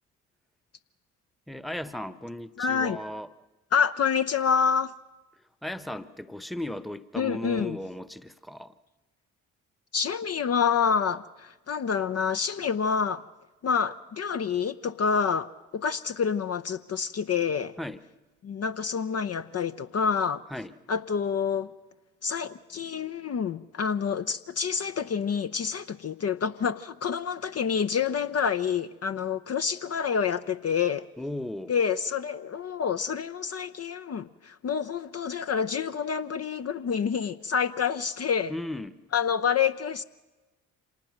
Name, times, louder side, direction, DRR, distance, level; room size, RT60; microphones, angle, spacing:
voice 1, 1.5-3.3 5.6-8.7 17.8-18.0 20.5-20.7 31.2-31.7 38.5-39.0, left 1 dB, ahead, 1.1 m, -36 dB
voice 2, 2.6-3.0 3.7-4.9 7.2-7.8 9.9-13.2 13.6-17.7 18.4-20.4 20.9-21.7 22.2-31.1 31.7-38.5 39.1-40.0, left 6 dB, 40° left, 0.8 m, -27 dB
26.5 x 19.0 x 6.6 m
hypercardioid pair, 45°, 39 cm